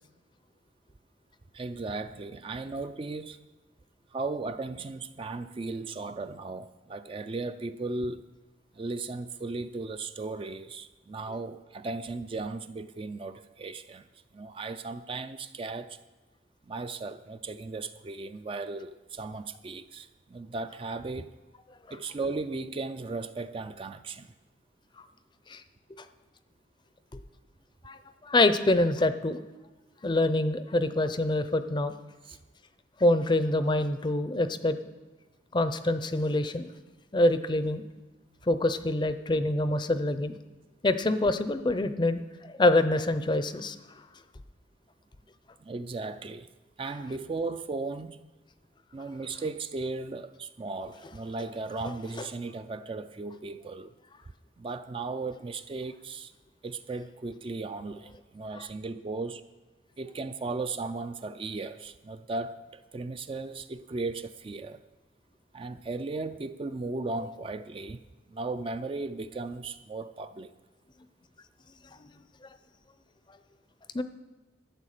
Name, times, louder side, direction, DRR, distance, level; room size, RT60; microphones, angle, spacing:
voice 1, 1.5-3.4 4.1-8.3 8.7-14.1 14.3-16.0 16.6-21.4 21.9-24.3 32.2-32.4 45.6-46.5 46.8-48.2 48.9-53.9 54.6-56.3 56.6-59.4 60.0-64.8 65.5-68.0 68.3-70.5, right 3 dB, 30° right, 0.3 m, -36 dB
voice 2, 28.2-29.4 30.0-31.9 33.0-34.8 35.5-36.7 37.1-37.8 38.5-40.4 40.8-42.2 42.5-43.8 72.0-72.1 73.9-74.0, left 1 dB, 25° left, 0.5 m, -25 dB
12.5 x 7.9 x 6.6 m
head